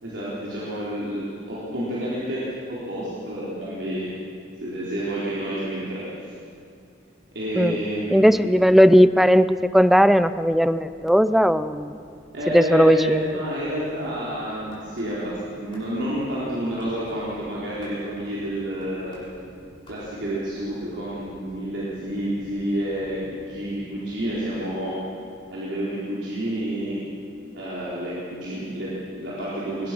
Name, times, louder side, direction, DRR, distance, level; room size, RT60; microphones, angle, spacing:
voice 1, 0.0-4.1 4.6-6.0 7.3-8.4 12.3-19.2 19.9-25.0 25.5-27.0 27.5-29.9, equal, 80° right, -8 dB, 4.4 m, -29 dB
sound 1, 7.5-24.6, equal, 55° right, 6.4 m, -50 dB
voice 2, 8.1-12.0 12.5-13.2, equal, ahead, 14 dB, 0.5 m, -17 dB
sound 2, 14.7-15.1 15.7-15.9 16.8-17.2 17.8-18.0 18.8-19.2 19.9-20.0, left 1 dB, 25° left, 7.0 m, -51 dB
22.0 x 21.0 x 6.2 m, 2.4 s
head